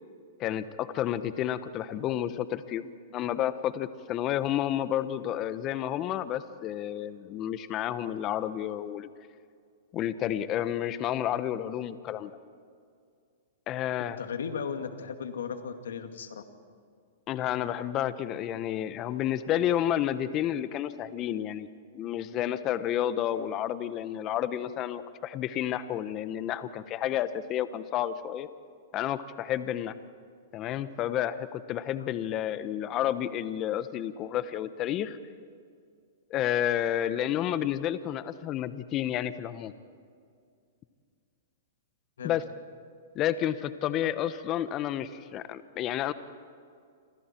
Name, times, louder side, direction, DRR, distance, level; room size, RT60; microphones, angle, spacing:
voice 1, 0.4-9.1 9.9-12.3 13.7-14.2 17.3-21.7 21.9-28.5 28.9-29.9 30.5-35.2 36.3-39.7 42.2-42.4 43.1-46.1, left 11 dB, 35° left, 13 dB, 1.0 m, -30 dB
voice 2, 14.0-16.4 42.2-42.3, left 6 dB, 80° left, 6 dB, 2.3 m, -36 dB
29.0 x 26.0 x 4.6 m, 2.3 s
hypercardioid pair, 125°, 0 cm